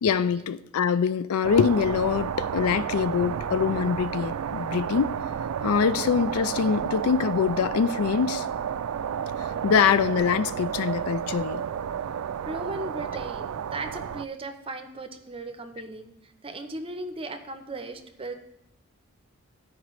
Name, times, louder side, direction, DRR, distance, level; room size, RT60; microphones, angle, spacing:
voice 1, 0.0-5.2 5.6-8.5 9.6-11.6, left 6 dB, 80° left, 0.4 m, -24 dB
sound 1, 1.4-14.2, right 8 dB, 75° right, 0.3 m, -31 dB
voice 2, 12.4-18.3, right 2 dB, 25° right, 0.7 m, -37 dB
13.5 x 4.9 x 3.1 m
head